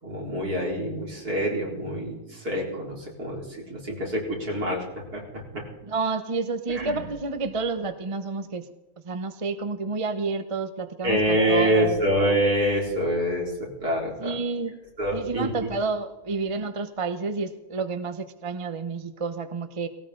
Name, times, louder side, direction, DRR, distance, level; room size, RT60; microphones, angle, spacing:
voice 1, 0.0-5.2 5.5-5.6 6.7-7.0 11.0-14.4 15.0-15.5, equal, 70° right, -2 dB, 4.8 m, -26 dB
voice 2, 5.8-8.7 9.0-12.0 14.2-14.8 15.1-19.9, right 4 dB, 25° right, 9 dB, 0.8 m, -30 dB
19.0 x 18.0 x 3.9 m, 1.0 s
omnidirectional pair, 1.7 m